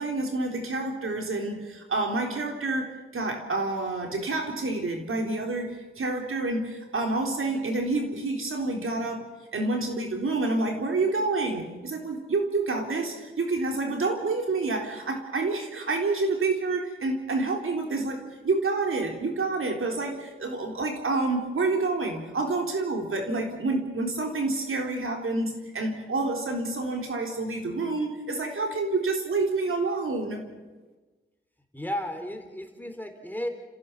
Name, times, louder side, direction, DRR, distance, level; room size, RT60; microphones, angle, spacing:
voice 1, 0.0-30.5, right 3 dB, 80° right, 2 dB, 3.8 m, -28 dB
voice 2, 31.7-33.5, left 1 dB, 10° left, 5 dB, 3.8 m, -33 dB
30.0 x 15.5 x 7.2 m, 1.2 s
wide cardioid pair, 65°, 21 cm